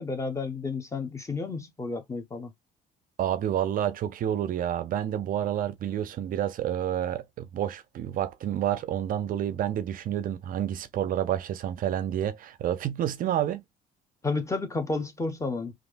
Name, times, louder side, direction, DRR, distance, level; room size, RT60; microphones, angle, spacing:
voice 1, 0.0-2.5 14.2-15.7, left 3 dB, 15° left, 0.9 m, -31 dB
voice 2, 3.2-13.6, right 10 dB, 55° right, 0.5 m, -29 dB
3.3 x 2.4 x 2.4 m
cardioid pair, 110°, 17 cm